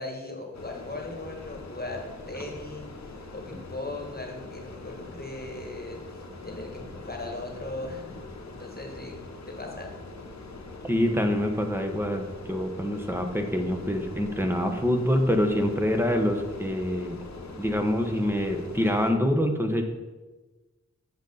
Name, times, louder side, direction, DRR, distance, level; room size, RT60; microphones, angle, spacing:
voice 1, 0.0-2.9 3.3-8.2 8.6-9.2 9.5-9.9, left 2 dB, 35° left, 1 dB, 1.4 m, -38 dB
sound 1, 0.5-19.1, left 3 dB, 70° left, 1.0 m, -43 dB
voice 2, 10.8-17.2 17.6-19.8, equal, 10° right, 5 dB, 1.0 m, -26 dB
8.1 x 6.5 x 4.0 m, 1.2 s
wide cardioid pair, 60°, 29 cm